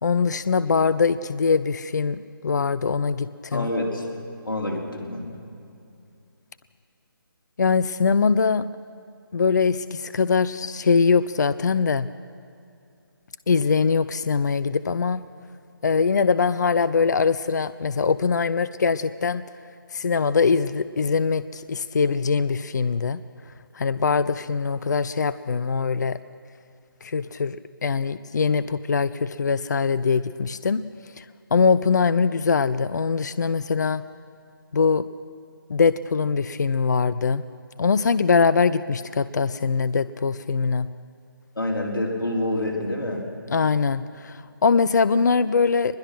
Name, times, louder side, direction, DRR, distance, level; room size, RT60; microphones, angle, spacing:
voice 1, 0.0-3.7 7.6-8.6 9.3-12.1 13.5-15.2 15.8-19.4 19.9-23.2 23.7-26.2 27.0-27.6 27.8-30.8 31.2-31.3 31.5-34.0 34.7-35.1 35.7-37.4 37.8-40.9 43.5-46.0, left 5 dB, 50° left, 15 dB, 0.6 m, -22 dB
voice 2, 3.5-4.1 4.4-5.4 41.6-43.2, left 1 dB, 70° left, -1 dB, 4.4 m, -27 dB
22.0 x 21.0 x 6.1 m, 2.6 s
figure-of-eight pair, 150°, 12 cm